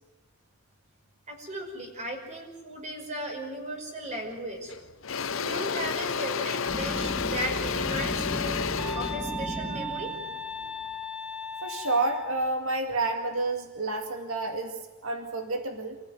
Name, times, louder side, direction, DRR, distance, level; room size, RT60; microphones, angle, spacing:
voice 1, 1.3-4.7 5.3-8.7 8.9-10.1, right 1 dB, 30° right, 3 dB, 5.6 m, -36 dB
Engine / Drill, 4.1-4.3 4.7-10.8, left 6 dB, 60° left, 0.9 m, -31 dB
sound 1, 6.7-10.4, left 1 dB, 15° left, 1.4 m, -36 dB
sound 2, 8.8-12.4, left 1 dB, 5° right, 2.3 m, -37 dB
voice 2, 11.6-16.0, right 2 dB, 65° right, 5 dB, 2.3 m, -29 dB
27.5 x 15.5 x 9.6 m, 1.2 s
head